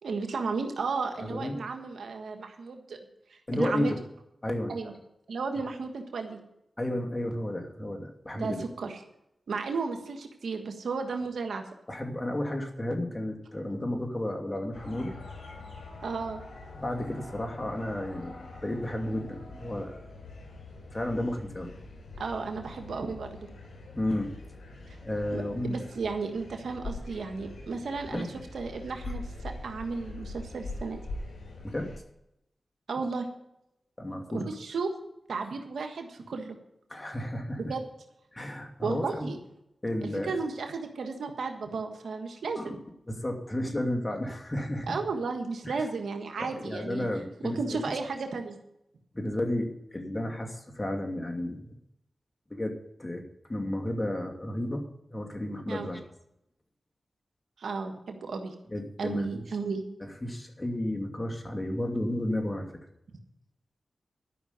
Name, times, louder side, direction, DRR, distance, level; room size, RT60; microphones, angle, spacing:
voice 1, 0.0-3.0 3.3-3.9 4.7-4.9 5.3-6.4 8.3-8.9 9.5-11.6 16.0-16.4 22.2-23.5 25.3-28.3 28.5-31.0 32.9-33.3 34.3-34.9 35.3-36.6 37.6-37.8 38.8-39.4 40.0-42.8 44.9-47.0 47.4-48.6 55.7-55.9 57.6-58.5 59.0-59.8, right 4 dB, 85° right, 5 dB, 1.5 m, -34 dB
voice 2, 1.2-1.6 3.5-4.0 4.4-4.7 6.8-8.6 11.9-15.1 16.7-18.4 18.6-20.0 20.9-21.7 23.9-24.3 25.0-25.8 28.1-28.3 31.6-31.9 34.0-34.4 36.9-37.7 38.3-39.3 39.8-40.4 42.5-42.8 43.1-45.0 45.6-45.9 46.4-48.0 49.1-51.8 52.5-52.7 53.0-53.2 53.5-56.0 58.7-59.4 60.0-62.7, left 1 dB, 25° left, 2 dB, 2.6 m, -32 dB
sound 1, 14.7-32.0, left 2 dB, 90° left, 3.7 m, -43 dB
12.5 x 6.0 x 9.5 m, 0.82 s
cardioid pair, 40°, 0 cm